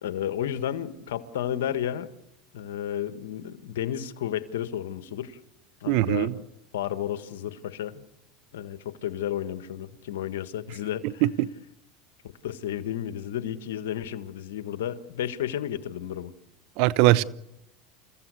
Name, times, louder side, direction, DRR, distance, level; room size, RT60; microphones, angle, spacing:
voice 1, 0.0-2.1 2.5-5.4 5.8-6.4 6.7-8.0 8.5-11.2 12.2-16.3, left 10 dB, 85° left, 1.6 m, -32 dB
voice 2, 5.9-6.3 11.2-11.5 16.8-17.2, right 16 dB, 65° right, 1.0 m, -21 dB
29.0 x 15.5 x 8.3 m
supercardioid pair, 110°, 0 cm